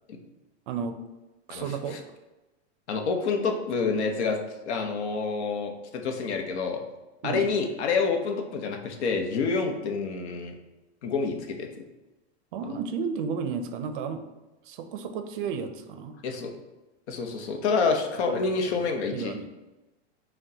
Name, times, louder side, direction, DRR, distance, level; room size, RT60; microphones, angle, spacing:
voice 1, 0.7-1.0 1.5-2.0 7.2-7.5 12.5-14.2 14.6-16.2 18.3-18.5 19.1-19.5, right 6 dB, 50° right, 8 dB, 0.4 m, -32 dB
voice 2, 2.9-4.4 4.7-6.8 7.2-10.5 11.0-11.7 16.2-16.5 17.1-19.3, left 4 dB, 85° left, 4 dB, 0.8 m, -28 dB
5.9 x 2.2 x 2.7 m, 1.1 s
supercardioid pair, 165°, 33 cm